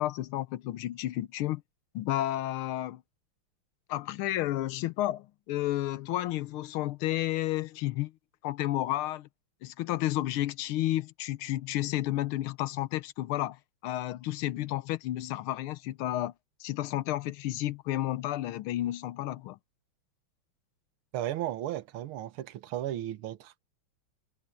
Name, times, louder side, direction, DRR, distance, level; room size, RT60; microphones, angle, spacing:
voice 1, 0.0-1.6 2.0-3.0 3.9-8.1 8.4-9.3 9.6-16.3 16.6-19.6, left 15 dB, 85° left, 1.6 m, -31 dB
voice 2, 21.1-23.6, right 13 dB, 85° right, 1.8 m, -35 dB
omnidirectional pair, 2.3 m